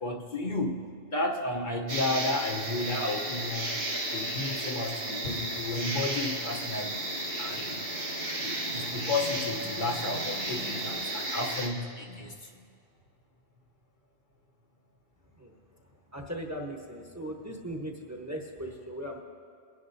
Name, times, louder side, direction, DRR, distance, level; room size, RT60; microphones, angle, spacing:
voice 1, 0.0-3.8 4.1-7.0 7.4-7.8 8.4-12.6, left 2 dB, 50° left, 0 dB, 1.0 m, -33 dB
sound 1, 1.9-11.7, right 1 dB, 85° right, 2.1 m, -33 dB
sound 2, 5.4-11.0, right 3 dB, 85° left, 3.7 m, -47 dB
voice 2, 16.1-19.2, equal, 15° right, 0 dB, 1.0 m, -38 dB
23.5 x 10.5 x 2.6 m, 2.3 s
omnidirectional pair, 1.1 m